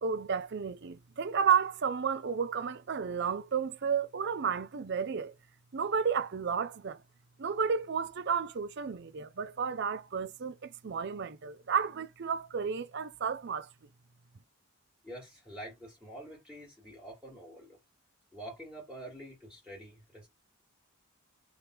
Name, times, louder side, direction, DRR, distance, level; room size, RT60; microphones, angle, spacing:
voice 1, 0.0-5.3 5.7-7.0 7.4-13.7, right 6 dB, 50° right, 0.5 m, -32 dB
voice 2, 15.0-17.8 18.3-20.3, right 1 dB, 5° right, 1.8 m, -47 dB
3.5 x 3.1 x 4.4 m
head